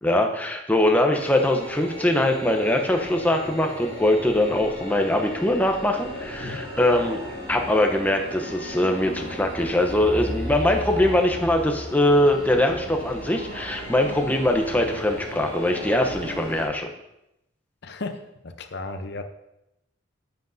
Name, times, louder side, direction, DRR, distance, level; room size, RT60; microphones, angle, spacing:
voice 1, 0.0-7.2 7.5-16.9, left 1 dB, 10° left, 3 dB, 0.7 m, -22 dB
sound 1, 1.1-16.6, left 1 dB, 30° right, 2.4 m, -36 dB
sound 2, 6.9-7.4 10.9-11.4, right 1 dB, 80° right, 3.0 m, -35 dB
voice 2, 17.8-19.2, left 3 dB, 55° left, 7 dB, 0.7 m, -35 dB
10.5 x 8.0 x 2.6 m, 0.86 s
head